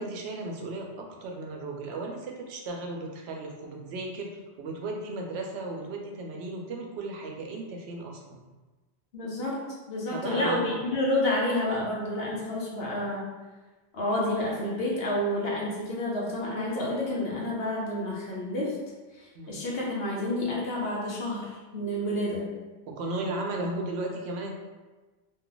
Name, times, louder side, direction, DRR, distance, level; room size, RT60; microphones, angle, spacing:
voice 1, 0.0-4.3 4.6-8.4 10.1-10.8 19.3-19.6 22.9-24.5, right 2 dB, 80° right, 1 dB, 0.8 m, -35 dB
voice 2, 9.1-9.6 9.9-13.2 13.9-18.8 19.1-22.5, left 1 dB, 70° left, -3 dB, 1.0 m, -29 dB
2.7 x 2.3 x 3.8 m, 1.2 s
omnidirectional pair, 1.1 m